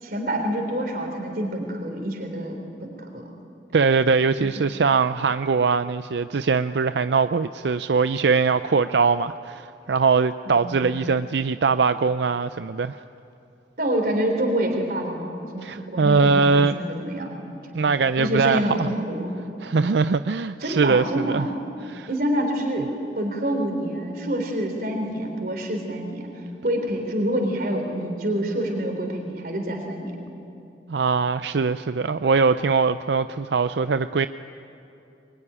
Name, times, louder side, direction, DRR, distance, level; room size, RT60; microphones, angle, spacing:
voice 1, 0.0-3.3 4.4-4.6 10.5-10.9 13.8-17.6 18.2-19.3 20.6-21.5 22.1-22.9 23.2-30.1, right 1 dB, 55° right, 2 dB, 3.6 m, -27 dB
voice 2, 3.7-13.0 15.6-16.8 17.7-18.9 19.6-21.5 21.8-22.1 30.9-34.3, right 4 dB, 80° right, 11 dB, 0.5 m, -21 dB
23.0 x 22.0 x 10.0 m, 2.7 s
head